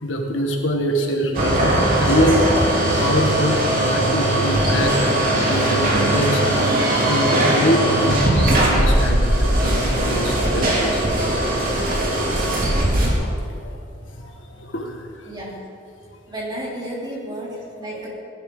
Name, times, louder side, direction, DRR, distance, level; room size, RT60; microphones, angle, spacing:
voice 1, 0.0-2.4 3.0-11.9 12.9-13.8 14.1-15.3 17.9-18.1, equal, 70° left, 2 dB, 1.7 m, -25 dB
sound 1, 1.3-13.1, right 1 dB, 50° right, 2.7 m, -19 dB
voice 2, 15.3-15.6 16.3-18.1, right 1 dB, 25° right, -5 dB, 3.4 m, -32 dB
18.5 x 11.0 x 3.9 m, 2.5 s
head